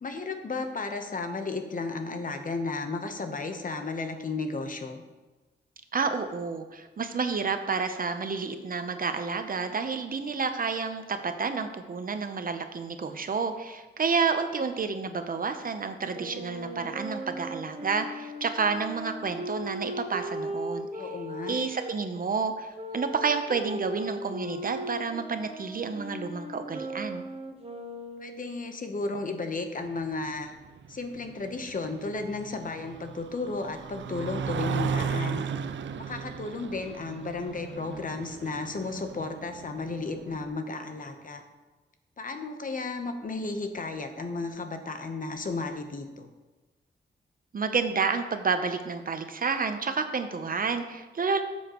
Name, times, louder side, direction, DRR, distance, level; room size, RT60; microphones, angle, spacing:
voice 1, 0.0-5.0 21.0-21.6 28.2-30.5 30.9-35.4 36.1-41.4 42.2-46.3, left 3 dB, 45° left, 6 dB, 1.0 m, -34 dB
voice 2, 5.9-21.1 21.5-27.2 47.5-51.4, right 5 dB, 50° right, 8 dB, 0.8 m, -30 dB
Wind instrument woodwind instrument, 16.1-21.9 22.7-28.5, right 1 dB, 30° right, 1.2 m, -38 dB
sound 1, 29.9-40.5, right 6 dB, 80° right, 0.5 m, -36 dB
13.0 x 7.2 x 3.0 m, 1.2 s
wide cardioid pair, 105°, 19 cm